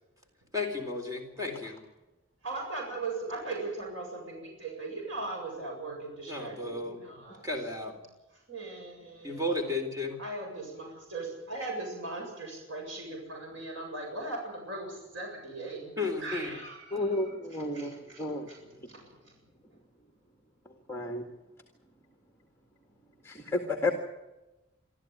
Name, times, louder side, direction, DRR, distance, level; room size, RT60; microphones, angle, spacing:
voice 1, 0.5-1.8 6.3-7.0 7.4-8.0 9.2-10.2 15.8-16.6 18.0-18.8, left 2 dB, 15° right, 4 dB, 3.8 m, -34 dB
voice 2, 2.4-7.4 8.5-9.8 10.2-17.3 17.7-18.6 18.9-19.0, right 2 dB, 75° right, 0 dB, 7.7 m, -39 dB
voice 3, 16.9-18.5 20.9-21.2 23.2-23.9, left 2 dB, 10° left, 4 dB, 1.9 m, -31 dB
25.0 x 14.0 x 9.5 m, 1.0 s
head